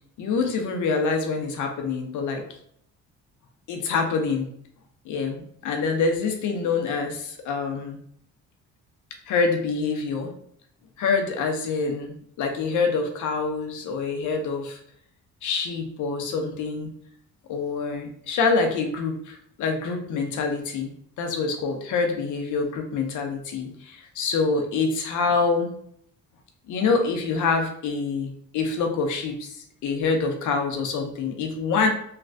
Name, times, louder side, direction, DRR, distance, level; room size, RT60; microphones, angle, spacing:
voice 1, 0.2-2.4 3.7-4.5 5.0-8.0 9.3-10.3 11.0-14.8 15.4-16.9 17.5-20.9 21.2-25.7 26.7-31.9, left 4 dB, 75° left, 4 dB, 0.7 m, -26 dB
3.3 x 2.3 x 2.6 m, 0.67 s
cardioid pair, 90°, 30 cm